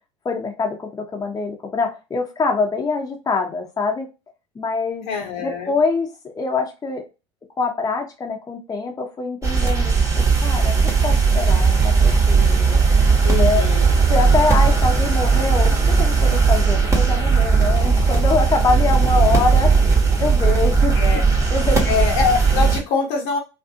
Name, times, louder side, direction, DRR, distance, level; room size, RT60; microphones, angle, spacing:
voice 1, 0.2-4.1 4.5-5.1 5.4-6.1 6.3-7.0 7.6-10.7 11.0-12.8 13.3-13.6 14.1-19.7 20.2-21.0 21.5-22.0, left 4 dB, 25° left, 1 dB, 0.9 m, -24 dB
voice 2, 5.1-5.7 13.2-13.9 20.9-21.2 21.8-23.4, left 6 dB, 60° left, 3 dB, 1.1 m, -24 dB
sound 1, 9.4-22.8, right 5 dB, 20° right, 1.1 m, -17 dB
2.5 x 2.4 x 2.8 m, 0.27 s
hypercardioid pair, 70°, 15 cm